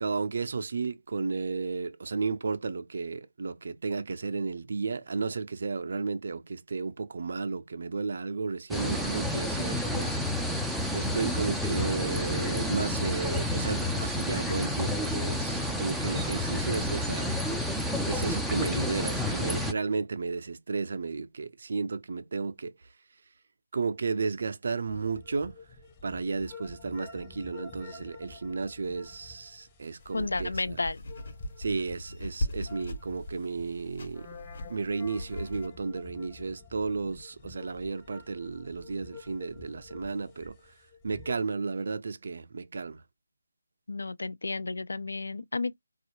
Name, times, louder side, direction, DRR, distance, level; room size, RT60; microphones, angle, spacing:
voice 1, 0.0-10.2 10.7-17.3 18.0-22.7 23.7-25.6 26.0-30.8 31.6-34.3 34.7-40.6 41.0-43.0, right 4 dB, 55° right, 0.5 m, -33 dB
sound 1, 8.7-19.7, left 1 dB, ahead, 0.4 m, -30 dB
sound 2, 24.9-41.4, left 4 dB, 20° left, 0.8 m, -50 dB
sound 3, 30.0-35.7, left 1 dB, 50° left, 1.1 m, -39 dB
voice 2, 30.1-31.0 43.9-45.7, left 3 dB, 70° left, 0.4 m, -32 dB
4.1 x 2.4 x 2.8 m
figure-of-eight pair, 150°, 0 cm